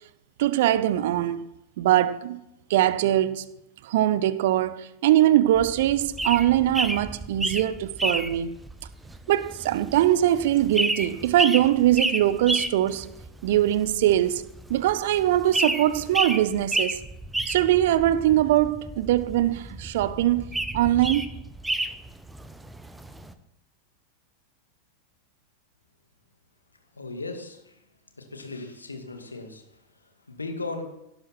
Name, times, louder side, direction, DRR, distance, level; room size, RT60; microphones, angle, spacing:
voice 1, 0.4-1.4 1.8-2.4 2.7-3.4 3.8-8.5 9.3-13.1 13.4-14.4 14.7-17.0 17.5-20.5 20.7-21.2, right 13 dB, 55° right, 0.8 m, -22 dB
sound 1, 5.6-23.3, right 2 dB, 5° right, 1.1 m, -31 dB
voice 2, 27.0-27.8 28.2-30.8, left 3 dB, 80° left, 2.4 m, -37 dB
17.0 x 12.5 x 4.5 m
figure-of-eight pair, 90°, 0 cm